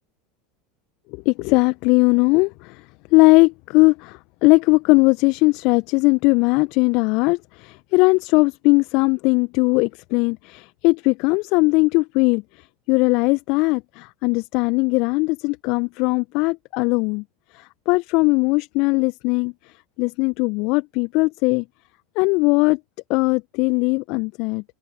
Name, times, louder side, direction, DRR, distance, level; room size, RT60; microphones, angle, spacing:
voice 1, 1.2-2.8 3.1-17.2 17.5-19.5 20.0-21.6 22.1-22.8 23.1-24.6, left 27 dB, 50° left, 1.5 m, -19 dB
figure-of-eight pair, 75°, 0 cm